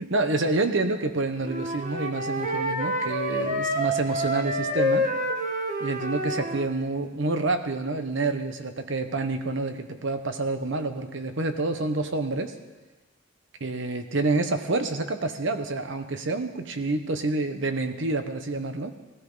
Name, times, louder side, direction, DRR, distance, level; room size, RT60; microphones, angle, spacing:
voice 1, 0.0-5.1 5.8-12.5 13.6-18.9, right 3 dB, 65° right, 8 dB, 1.1 m, -28 dB
Wind instrument woodwind instrument, 1.4-6.7, equal, 40° right, 1.7 m, -28 dB
18.0 x 14.5 x 4.0 m, 1.2 s
head